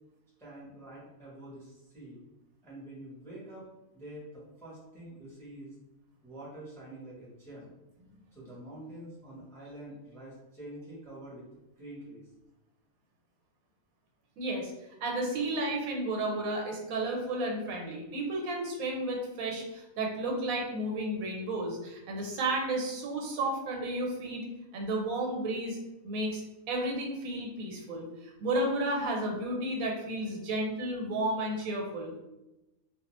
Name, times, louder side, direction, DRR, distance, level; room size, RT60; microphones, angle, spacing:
voice 1, 0.4-2.2 2.6-3.6 3.9-5.7 6.2-7.7 8.3-11.4 11.8-12.3, right 1 dB, 5° left, -7 dB, 0.5 m, -46 dB
voice 2, 14.4-14.7 15.0-24.4 24.7-25.8 26.0-26.4 26.7-32.2, right 1 dB, 85° right, 0 dB, 1.0 m, -32 dB
2.4 x 2.1 x 3.0 m, 0.99 s
omnidirectional pair, 1.5 m